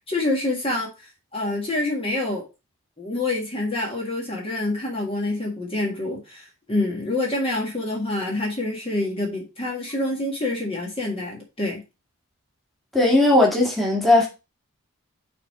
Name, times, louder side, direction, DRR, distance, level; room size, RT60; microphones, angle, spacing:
voice 1, 0.1-2.4 3.0-11.8, left 2 dB, 25° left, 1.7 m, -27 dB
voice 2, 12.9-14.3, left 2 dB, ahead, 1.9 m, -17 dB
6.4 x 3.7 x 5.4 m
head